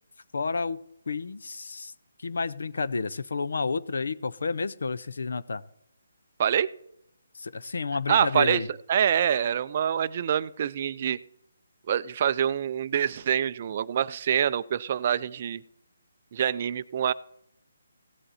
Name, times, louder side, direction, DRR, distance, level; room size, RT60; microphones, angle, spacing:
voice 1, 0.3-1.9 2.2-5.6 7.3-8.7, left 4 dB, 70° left, 16 dB, 0.6 m, -30 dB
voice 2, 8.1-8.6 8.9-11.2 11.9-15.6 16.3-17.1, right 9 dB, 35° right, 16 dB, 0.4 m, -25 dB
16.0 x 7.9 x 4.2 m, 0.77 s
hypercardioid pair, 165°, 0 cm